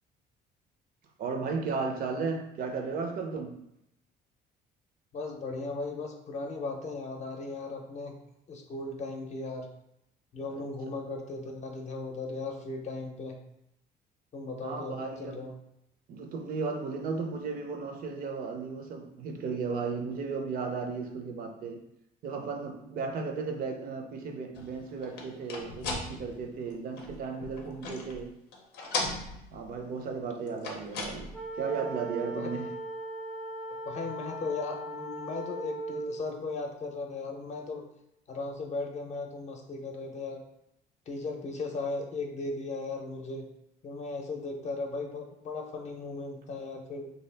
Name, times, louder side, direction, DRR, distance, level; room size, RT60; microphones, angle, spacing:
voice 1, 1.2-3.6 10.5-10.6 14.6-15.4 16.1-21.8 22.2-28.3 29.5-32.7, right 4 dB, 60° right, 4 dB, 0.5 m, -35 dB
voice 2, 5.1-8.2 8.5-9.7 10.3-13.4 14.3-15.5 32.3-32.5 33.9-37.8 38.3-40.4 41.1-43.4 43.8-47.1, left 3 dB, 45° left, 2 dB, 0.6 m, -37 dB
sound 1, 24.6-28.2 28.5-29.8 30.5-31.5, left 3 dB, 90° left, 0.6 m, -37 dB
sound 2, 31.3-36.2, right 2 dB, ahead, 0.3 m, -38 dB
2.7 x 2.4 x 3.3 m, 0.81 s
cardioid pair, 110°, 17 cm